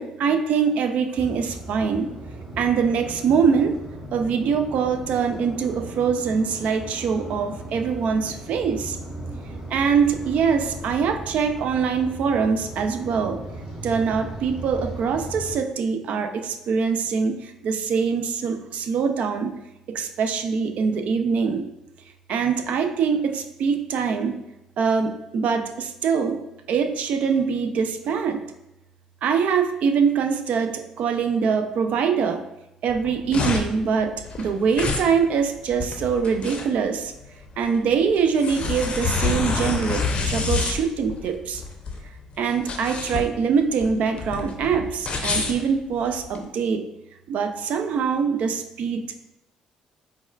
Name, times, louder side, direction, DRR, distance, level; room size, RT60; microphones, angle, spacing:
voice 1, 0.0-2.1 2.6-3.8 4.1-9.0 9.7-13.4 13.8-19.5 19.9-21.7 22.3-24.3 24.8-26.4 26.7-28.4 29.2-32.4 32.8-37.1 37.6-41.6 42.4-46.9 47.3-49.2, right 6 dB, 60° right, 7 dB, 0.3 m, -23 dB
sound 1, 1.2-15.5, right 1 dB, 40° right, 1.1 m, -37 dB
sound 2, 32.9-46.4, left 4 dB, 45° left, 0.5 m, -28 dB
4.1 x 2.3 x 2.3 m, 0.90 s
hypercardioid pair, 55°, 3 cm